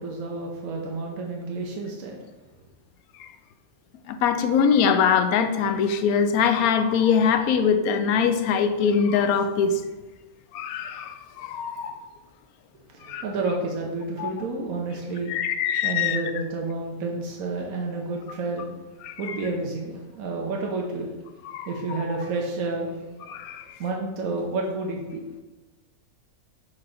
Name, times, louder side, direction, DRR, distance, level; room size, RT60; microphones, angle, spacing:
voice 1, 0.0-2.2 12.9-15.3 15.8-18.7 19.2-23.3 23.8-25.2, right 3 dB, 70° right, 0 dB, 1.2 m, -30 dB
voice 2, 4.1-9.8 10.5-12.0 13.0-13.2 14.2-14.3 15.3-16.2 19.0-19.4 21.4-21.7 23.3-23.8, left 6 dB, 75° left, 8 dB, 1.0 m, -23 dB
5.9 x 4.7 x 3.8 m, 1.1 s
omnidirectional pair, 1.6 m